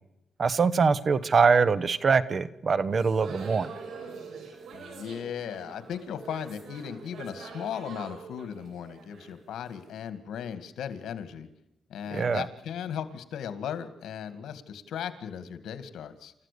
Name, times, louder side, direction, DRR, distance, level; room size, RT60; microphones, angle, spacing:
voice 1, 0.4-3.7 12.1-12.5, right 5 dB, 45° right, 15 dB, 1.2 m, -23 dB
sound 1, 2.9-9.9, right 5 dB, 80° right, 5.5 m, -44 dB
voice 2, 4.7-11.5 11.9-16.3, left 8 dB, 85° left, 12 dB, 2.0 m, -37 dB
29.5 x 14.5 x 6.9 m, 0.85 s
cardioid pair, 110°, 0 cm